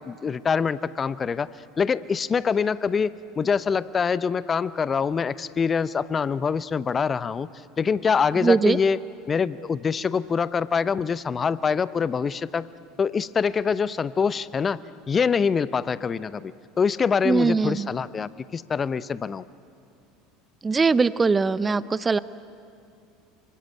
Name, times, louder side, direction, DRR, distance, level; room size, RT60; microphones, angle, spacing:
voice 1, 0.0-1.5 1.8-7.5 7.8-9.0 9.2-12.7 13.0-14.8 15.1-19.4, left 6 dB, 25° left, 17 dB, 0.7 m, -25 dB
voice 2, 8.4-8.8 17.2-17.9 20.6-22.2, right 4 dB, 20° right, 17 dB, 0.7 m, -21 dB
26.5 x 24.5 x 9.1 m, 2.5 s
figure-of-eight pair, 70°, 0 cm